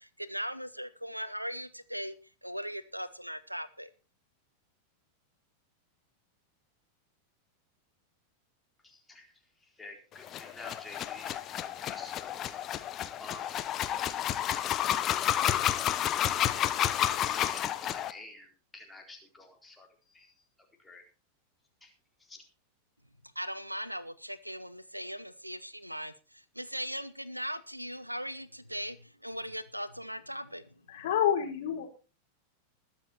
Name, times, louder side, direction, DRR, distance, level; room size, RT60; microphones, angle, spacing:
voice 1, 0.0-2.1 2.4-3.9 23.4-30.7, equal, 90° right, 17 dB, 0.9 m, -39 dB
voice 2, 8.8-13.7 16.2-16.6 17.0-20.5 20.8-21.0 21.8-21.9 22.2-22.4, left 2 dB, 10° left, 2 dB, 4.0 m, -50 dB
sound 1, 10.2-18.1, left 11 dB, 30° left, 1.1 m, -30 dB
voice 3, 30.9-31.9, left 9 dB, 55° left, 2 dB, 4.4 m, -28 dB
20.5 x 7.5 x 4.4 m, 0.34 s
figure-of-eight pair, 90°, 0 cm